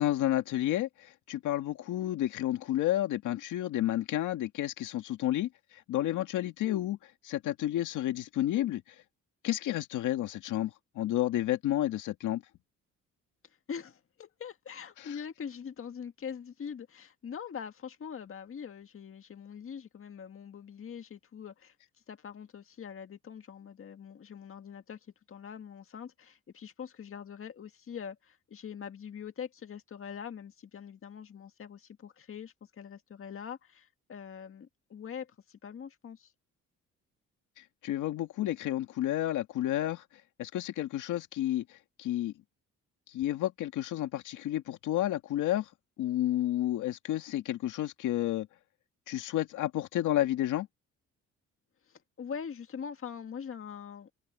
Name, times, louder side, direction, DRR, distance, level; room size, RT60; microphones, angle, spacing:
voice 1, 0.0-7.0 7.2-8.8 9.4-12.4 15.0-15.1 37.8-40.0 40.4-42.3 43.1-45.7 46.0-48.5 49.1-50.7, left 13 dB, 85° left, 2.0 m, -31 dB
voice 2, 13.4-21.7 22.1-36.3 51.9-54.1, left 7 dB, 45° left, 1.8 m, -43 dB
cardioid pair, 90°, 30 cm